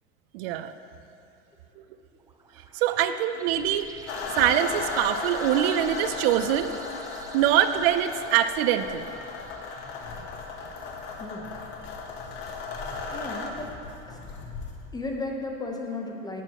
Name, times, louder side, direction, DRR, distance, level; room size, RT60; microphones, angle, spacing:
voice 1, 0.3-0.7 1.8-1.9 2.7-3.9 4.3-6.7 7.3-9.0, right 11 dB, 70° right, 11 dB, 0.6 m, -24 dB
sound 1, 2.1-11.3, right 3 dB, 10° right, 0.5 m, -49 dB
sound 2, 3.5-14.8, left 3 dB, 40° left, 1.1 m, -46 dB
sound 3, 4.1-13.5, left 4 dB, 80° left, 1.2 m, -35 dB
voice 2, 13.1-13.7 14.1-14.2 14.9-16.4, left 2 dB, 10° left, 1 dB, 0.9 m, -34 dB
12.0 x 9.1 x 3.0 m, 2.9 s
supercardioid pair, 125°, 31 cm